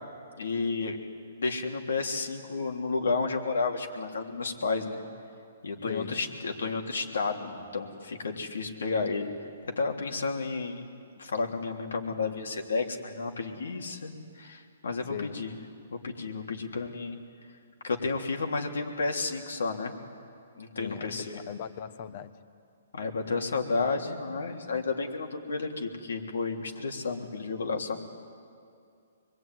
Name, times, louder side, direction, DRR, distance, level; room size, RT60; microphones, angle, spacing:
voice 1, 0.4-1.0 1.4-5.0 5.6-9.3 9.8-10.8 11.2-15.5 16.0-17.2 17.8-20.0 20.6-21.4 22.9-28.0, left 4 dB, 85° left, 3 dB, 3.3 m, -31 dB
voice 2, 5.9-6.2 15.1-15.4 20.8-22.3, left 8 dB, 40° left, 12 dB, 1.3 m, -38 dB
25.5 x 22.0 x 9.4 m, 2.4 s
hypercardioid pair, 155°, 0 cm